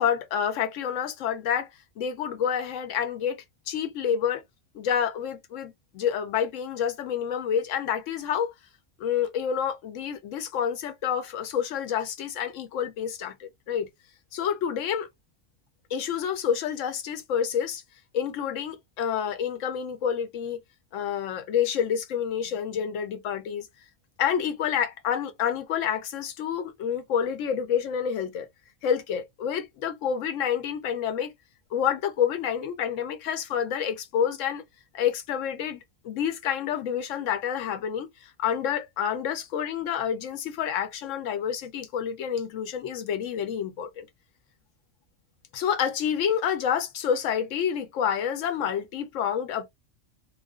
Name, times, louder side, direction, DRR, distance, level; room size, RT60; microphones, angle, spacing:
voice 1, 0.0-1.7 2.0-4.4 4.7-8.5 9.0-13.9 14.3-15.1 15.9-17.8 18.1-20.6 20.9-23.7 24.2-28.5 28.8-31.3 31.7-34.6 34.9-38.1 38.4-44.1 45.5-49.7, left 8 dB, 80° left, 1.0 m, -28 dB
2.4 x 2.2 x 2.3 m
omnidirectional pair, 1.3 m